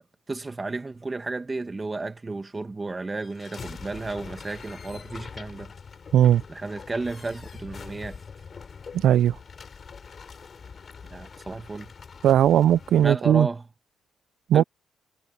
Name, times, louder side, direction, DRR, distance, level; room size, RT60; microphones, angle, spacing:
voice 1, 0.3-5.7 6.5-8.2 11.1-11.9 13.0-13.6 14.5-14.6, right 3 dB, 25° right, 1.3 m, -33 dB
sound 1, 3.2-13.1, left 5 dB, 45° left, 4.7 m, -43 dB
voice 2, 8.9-9.4 12.2-13.5 14.5-14.6, right 10 dB, 75° right, 0.4 m, -18 dB
cardioid pair, 90°, 0 cm